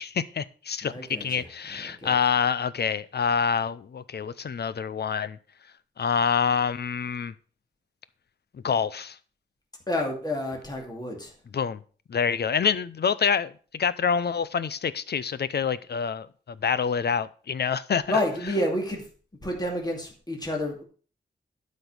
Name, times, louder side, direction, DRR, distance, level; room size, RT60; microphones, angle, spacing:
voice 1, 0.0-0.9 1.2-5.4 6.0-7.3 8.5-9.2 11.5-11.8 12.1-18.2, left 6 dB, 60° left, 0.6 m, -26 dB
voice 2, 0.8-1.5 1.8-2.2 9.9-11.3 18.1-19.0 19.4-20.8, left 1 dB, 20° left, 2.4 m, -29 dB
12.0 x 5.4 x 6.1 m
wide cardioid pair, 140°, 19 cm